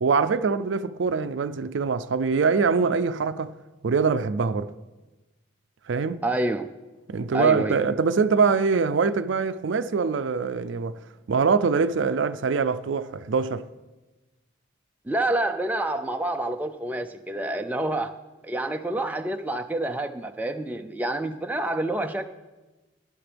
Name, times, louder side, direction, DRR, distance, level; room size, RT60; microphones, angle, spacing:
voice 1, 0.0-3.5 3.8-4.7 5.9-6.2 7.1-11.0 11.3-13.7, right 5 dB, 70° right, 0.4 m, -23 dB
voice 2, 6.2-6.7 7.3-7.8 15.1-18.1 18.4-22.3, right 1 dB, 10° right, 0.4 m, -28 dB
18.0 x 9.9 x 3.4 m
head